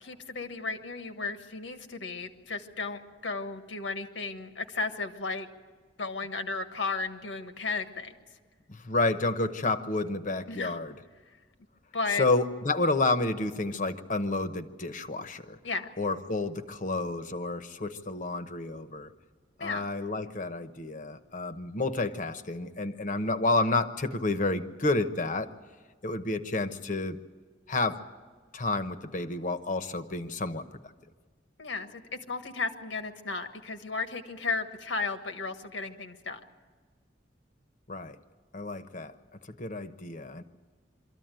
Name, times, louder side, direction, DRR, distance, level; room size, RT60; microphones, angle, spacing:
voice 1, 0.0-5.5 6.0-8.1 10.5-10.8 11.9-12.2 15.6-15.9 19.6-19.8 31.6-32.0 32.3-36.4, left 4 dB, 90° left, 7 dB, 1.5 m, -34 dB
voice 2, 8.7-10.9 12.1-15.6 16.0-19.1 19.6-25.5 26.0-27.2 27.7-28.0 28.5-30.8 37.9-38.2 38.5-39.1 39.5-40.4, left 2 dB, 45° left, 10 dB, 1.0 m, -30 dB
24.0 x 14.0 x 9.1 m, 1.5 s
head